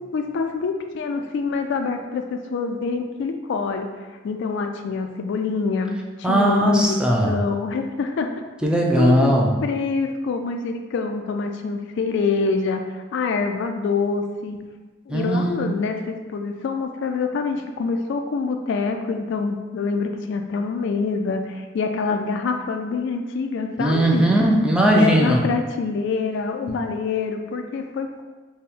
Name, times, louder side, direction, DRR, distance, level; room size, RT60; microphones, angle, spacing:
voice 1, 0.1-3.9 4.2-6.0 6.3-8.4 9.0-9.3 9.6-14.6 15.1-24.3 24.9-28.2, left 4 dB, 65° left, 5 dB, 0.3 m, -26 dB
voice 2, 6.2-7.3 8.6-9.5 15.1-15.7 23.8-25.4, right 1 dB, 5° right, -1 dB, 0.4 m, -18 dB
4.1 x 2.1 x 3.6 m, 1.3 s
head